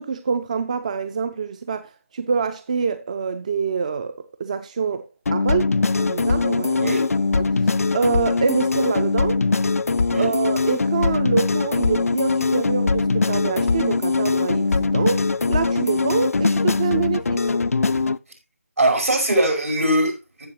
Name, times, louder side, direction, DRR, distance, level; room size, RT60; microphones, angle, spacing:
voice 1, 0.0-6.9 7.3-9.4 10.2-17.5, right 6 dB, 30° right, 0.5 m, -26 dB
sound 1, 5.3-18.2, left 4 dB, 70° left, 0.4 m, -21 dB
voice 2, 6.8-7.1 10.1-10.3 18.8-20.5, right 1 dB, 75° right, 5.4 m, -21 dB
15.0 x 6.9 x 2.8 m
figure-of-eight pair, 160°, 8 cm